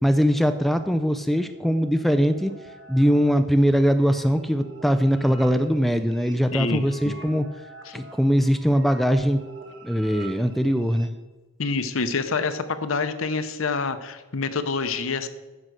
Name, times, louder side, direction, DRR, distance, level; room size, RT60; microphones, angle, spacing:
voice 1, 0.0-2.5 2.9-7.5 7.9-9.4 9.8-11.1, equal, ahead, 8 dB, 0.3 m, -21 dB
sound 1, 0.8-11.1, right 2 dB, 60° right, 1.8 m, -46 dB
voice 2, 6.5-7.1 7.9-8.0 11.6-15.3, left 4 dB, 65° left, 11 dB, 0.8 m, -27 dB
9.6 x 6.4 x 6.3 m, 1.2 s
head